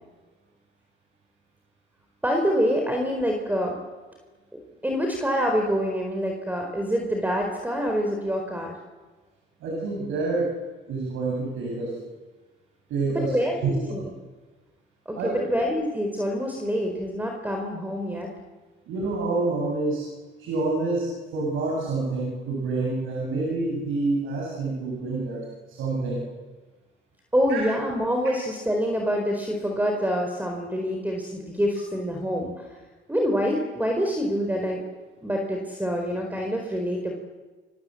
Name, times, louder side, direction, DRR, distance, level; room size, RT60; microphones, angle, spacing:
voice 1, 2.2-3.8 4.5-8.7 13.1-14.1 15.1-18.3 27.3-32.7 33.1-34.8 35.2-37.1, equal, 10° right, 2 dB, 4.4 m, -26 dB
voice 2, 9.6-10.5 10.9-11.9 12.9-13.3 13.6-13.7 15.1-15.4 18.9-20.1 20.4-26.2 27.5-27.6, right 3 dB, 90° right, -2 dB, 7.9 m, -27 dB
28.5 x 25.0 x 7.9 m, 1.3 s
cardioid pair, 90°, 20 cm